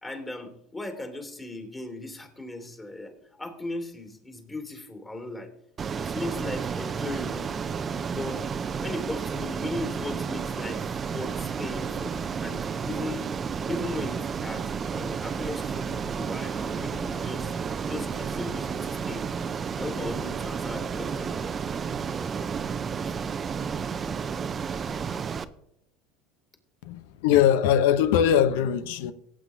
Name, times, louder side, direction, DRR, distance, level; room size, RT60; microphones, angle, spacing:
voice 1, 0.0-5.5 5.9-7.5 8.1-8.4 8.8-13.3 13.7-17.5 17.9-19.2 19.7-21.5 23.0-23.1, left 2 dB, 15° left, 2.6 m, -37 dB
Ocean, 5.8-25.4, right 6 dB, 30° right, 0.6 m, -31 dB
voice 2, 26.8-29.1, left 10 dB, 80° left, 0.8 m, -21 dB
18.0 x 8.5 x 2.7 m
supercardioid pair, 95°, 0 cm